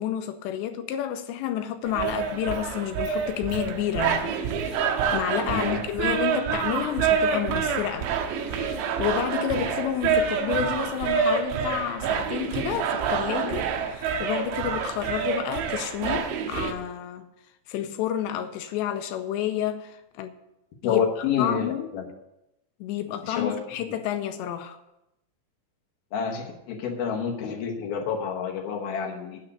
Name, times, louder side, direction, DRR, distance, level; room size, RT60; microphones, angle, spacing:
voice 1, 0.0-4.3 4.6-8.1 8.5-17.3 17.7-20.3 20.8-21.0 21.4-21.9 22.8-24.8, left 10 dB, 85° left, 2.8 m, -30 dB
sound 1, 1.8-16.7, right 7 dB, 90° right, 3.3 m, -27 dB
voice 2, 5.5-5.8 20.8-22.1 23.2-23.6 26.1-29.4, left 7 dB, 70° left, 2.7 m, -28 dB
9.8 x 6.4 x 8.1 m
omnidirectional pair, 5.1 m